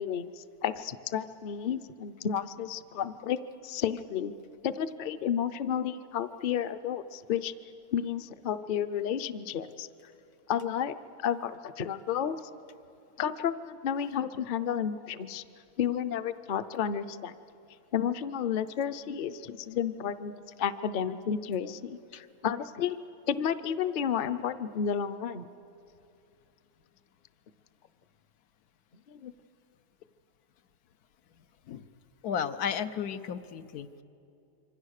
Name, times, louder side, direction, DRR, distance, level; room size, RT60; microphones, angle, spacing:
voice 1, 0.0-3.4 3.6-4.3 4.6-7.5 7.9-9.9 10.5-10.9 11.2-12.4 13.2-15.4 15.8-17.3 17.9-20.3 20.6-23.0 23.3-25.5 29.1-29.3, left 8 dB, 50° left, 11 dB, 0.6 m, -31 dB
voice 2, 32.2-34.0, left 7 dB, 85° left, 10 dB, 1.3 m, -33 dB
26.5 x 24.0 x 6.5 m, 2.7 s
omnidirectional pair, 1.6 m